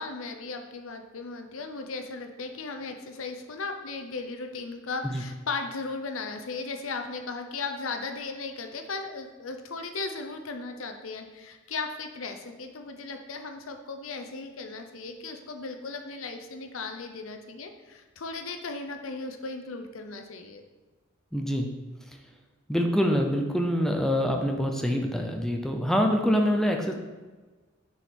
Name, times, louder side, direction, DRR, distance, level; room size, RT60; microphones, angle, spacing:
voice 1, 0.0-20.6, left 4 dB, 75° left, 5 dB, 0.7 m, -36 dB
voice 2, 21.3-21.7 22.7-26.9, equal, ahead, 2 dB, 0.6 m, -25 dB
6.5 x 4.8 x 4.4 m, 1.3 s
head